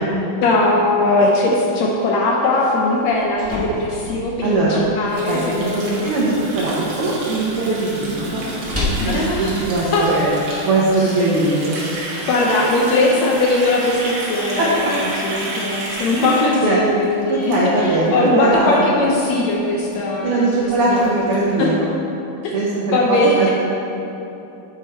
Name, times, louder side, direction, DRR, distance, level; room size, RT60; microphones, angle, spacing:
voice 1, 0.4-6.1 9.0-9.5 9.8-10.1 12.3-21.7 22.4-22.5 22.9-23.5, left 2 dB, 75° left, -2 dB, 1.7 m, -19 dB
sound 1, 2.9-10.9, left 2 dB, 15° right, 0.5 m, -32 dB
voice 2, 4.4-4.8 5.3-5.7 6.0-10.3 10.6-11.8 14.6-14.9 16.2-16.3 16.6-16.8 17.3-18.9 20.2-21.9 22.5-23.5, right 2 dB, 75° right, -6 dB, 1.3 m, -20 dB
Water tap faucet, 5.1-18.1 18.4-18.6 18.9-19.3 19.5-19.6 19.8-19.9 20.3-20.4 20.6-21.7, right 1 dB, 60° right, 2.4 m, -31 dB
8.6 x 5.0 x 4.3 m, 3.0 s
omnidirectional pair, 3.6 m